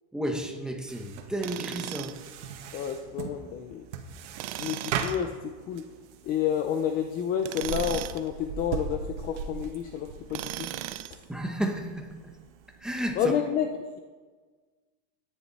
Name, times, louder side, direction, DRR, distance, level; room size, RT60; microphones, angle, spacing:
voice 1, 0.1-2.2 11.3-12.3 12.8-13.3, right 1 dB, ahead, 2 dB, 1.1 m, -32 dB
sound 1, 0.9-13.4, right 6 dB, 85° right, 1.9 m, -39 dB
Tools, 1.4-2.3 4.4-5.2 7.4-8.3 10.3-11.2, right 14 dB, 45° right, 0.6 m, -37 dB
voice 2, 2.7-3.8 4.6-5.3 5.7-5.8 6.2-10.7 13.2-13.7, left 8 dB, 25° left, 6 dB, 0.6 m, -29 dB
22.5 x 10.5 x 4.2 m, 1.4 s
supercardioid pair, 165°, 35 cm